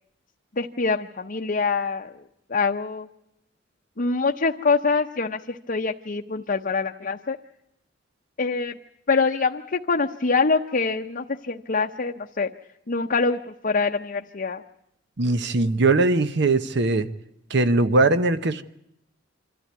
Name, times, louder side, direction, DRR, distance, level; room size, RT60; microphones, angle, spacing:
voice 1, 0.6-2.2 2.5-3.1 4.0-7.4 8.4-8.8 9.1-12.5 12.9-14.6, left 4 dB, 45° left, 3 dB, 0.8 m, -25 dB
voice 2, 15.2-17.1 17.5-18.6, right 2 dB, 60° right, 11 dB, 0.9 m, -20 dB
25.5 x 14.0 x 9.5 m, 0.80 s
head